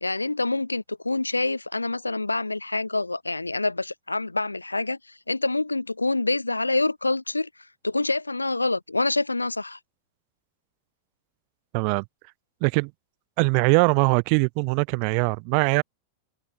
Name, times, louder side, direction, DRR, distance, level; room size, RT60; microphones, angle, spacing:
voice 1, 0.0-5.0 5.3-7.5 7.8-9.8, left 2 dB, 80° left, 0.9 m, -26 dB
voice 2, 11.7-12.0 12.6-12.9 13.4-15.8, right 40 dB or more, 45° right, 0.9 m, -21 dB
figure-of-eight pair, 90°, 0 cm